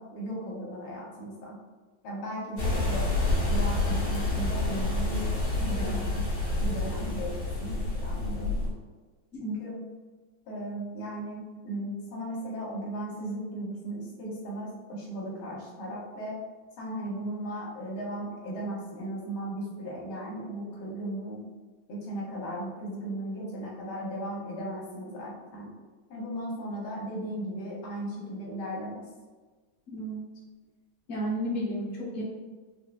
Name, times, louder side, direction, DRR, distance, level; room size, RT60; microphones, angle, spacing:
voice 1, 0.0-1.6 2.0-3.1 3.4-6.2 6.6-8.7 9.4-9.9 10.5-16.4 16.8-21.4 21.9-25.7 26.1-29.1, right 1 dB, 90° left, -4 dB, 1.8 m, -36 dB
sound 1, 2.6-8.7, left 2 dB, 60° left, 2.2 m, -28 dB
voice 2, 29.9-30.2 31.1-32.2, equal, 45° left, -6 dB, 0.7 m, -32 dB
4.4 x 2.0 x 2.4 m, 1.3 s
omnidirectional pair, 2.2 m